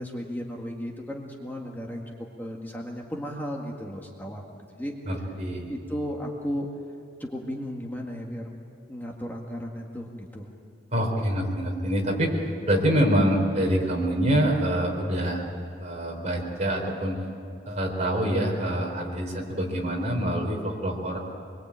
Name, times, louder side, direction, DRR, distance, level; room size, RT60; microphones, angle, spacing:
voice 1, 0.0-4.9 5.7-6.7 7.2-8.5 8.9-10.5, equal, 10° left, -1 dB, 1.8 m, -35 dB
voice 2, 5.0-5.7 10.9-12.4 12.7-15.4 15.8-17.2 17.7-21.2, equal, 40° right, 0 dB, 4.5 m, -25 dB
25.5 x 22.5 x 8.8 m, 2.3 s
head